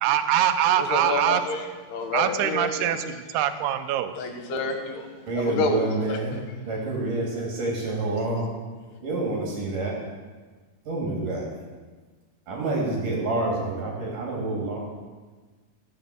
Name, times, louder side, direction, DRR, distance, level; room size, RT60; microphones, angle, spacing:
voice 1, 0.0-1.4 2.1-4.1, right 11 dB, 80° right, 9 dB, 2.5 m, -23 dB
voice 2, 0.8-3.0 4.2-5.1 5.3-5.8 6.1-6.2, left 3 dB, 70° left, 5 dB, 3.2 m, -29 dB
voice 3, 5.3-6.4 6.6-8.5 9.0-9.9 10.8-11.5 12.5-14.8, right 2 dB, 50° right, -2 dB, 3.8 m, -28 dB
15.0 x 6.8 x 7.8 m, 1.4 s
omnidirectional pair, 5.1 m